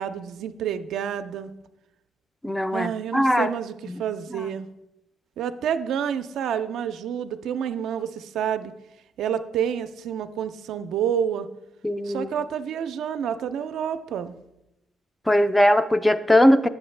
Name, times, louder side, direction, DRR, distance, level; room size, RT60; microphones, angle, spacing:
voice 1, 0.0-1.5 2.7-3.7 4.0-4.7 5.4-8.7 9.2-11.5 12.1-14.4, right 8 dB, 80° right, 9 dB, 0.4 m, -28 dB
voice 2, 2.4-3.5 3.9-4.0 4.3-4.5 11.8-12.3 15.3-16.7, left 1 dB, 10° left, 12 dB, 0.4 m, -20 dB
7.8 x 7.2 x 3.2 m, 0.90 s
cardioid pair, 90°, 0 cm